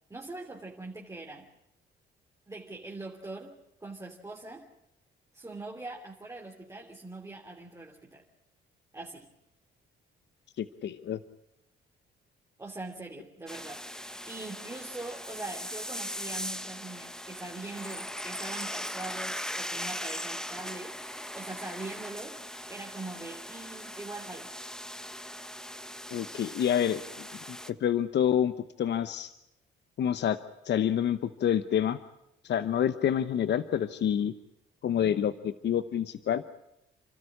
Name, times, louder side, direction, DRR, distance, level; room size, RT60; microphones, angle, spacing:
voice 1, 0.1-1.5 2.5-4.7 5.3-8.2 8.9-9.3 12.6-24.5, right 2 dB, 15° right, -1 dB, 3.1 m, -42 dB
voice 2, 10.6-11.2 26.1-27.0 27.5-29.3 30.0-30.4 30.6-32.0 32.4-34.3 34.8-36.4, left 9 dB, 60° left, 12 dB, 1.0 m, -28 dB
sound 1, 13.5-27.7, equal, 5° left, 1.2 m, -39 dB
29.5 x 13.0 x 9.9 m, 0.83 s
cardioid pair, 90°, 20 cm